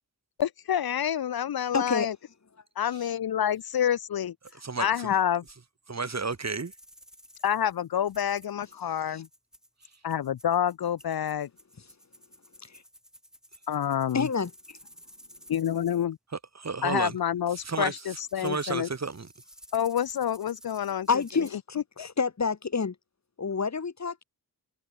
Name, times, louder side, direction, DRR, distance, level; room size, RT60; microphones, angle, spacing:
voice 1, 0.4-2.2 2.8-4.3 4.8-5.4 7.4-9.3 10.0-11.5 13.7-14.3 15.5-16.2 16.8-18.9 19.7-21.1 22.0-22.1, left 9 dB, 70° left, 0.6 m, -28 dB
voice 2, 1.7-2.1 9.1-9.2 12.6-12.8 14.1-14.8 21.1-22.9 23.4-24.2, left 5 dB, 45° left, 1.6 m, -29 dB
sound 1, 4.4-4.5 5.4-5.6 6.4-16.0 17.5-17.6 17.9-21.5, equal, ahead, 8.0 m, -54 dB
voice 3, 4.6-5.1 5.9-6.7 16.5-17.1 17.6-19.3, right 4 dB, 45° right, 2.6 m, -32 dB
wide cardioid pair, 115°, 39 cm